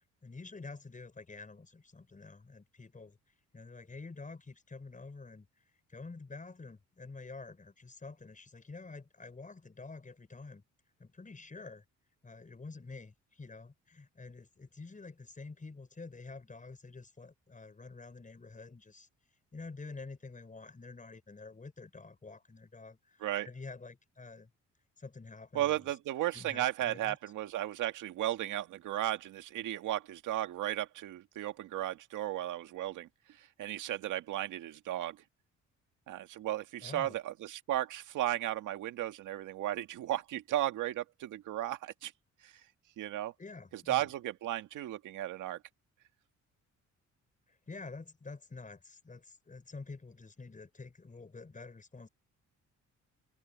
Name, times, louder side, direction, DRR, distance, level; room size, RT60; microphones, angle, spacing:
voice 1, 0.2-3.2 3.5-5.5 5.9-10.6 11.0-11.8 12.2-19.1 19.5-24.5 25.0-26.0 26.3-27.2 36.8-37.2 43.4-44.1 47.5-52.1, left 3 dB, 25° left, 6.1 m, -48 dB
voice 2, 25.5-33.1 33.6-35.2 36.1-42.1 42.4-42.5 43.0-43.3 43.7-45.6, right 13 dB, 85° right, 2.0 m, -35 dB
open air
cardioid pair, 90°, 30 cm